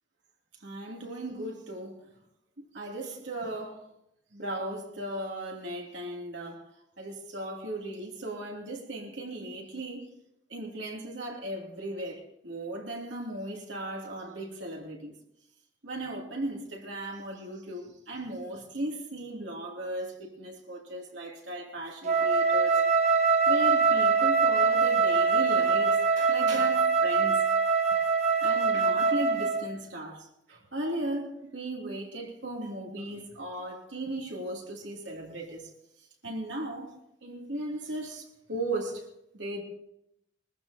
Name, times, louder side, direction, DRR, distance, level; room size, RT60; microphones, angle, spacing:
voice 1, 0.6-2.0 2.6-3.9 4.3-6.6 7.0-10.1 10.5-15.1 15.8-22.8 23.5-27.8 28.4-35.7 36.2-36.9 37.2-39.0 39.3-39.6, right 1 dB, 80° right, 2.7 m, -37 dB
Wind instrument woodwind instrument, 22.0-29.7, right 5 dB, 35° right, 1.3 m, -23 dB
21.0 x 14.5 x 2.8 m
head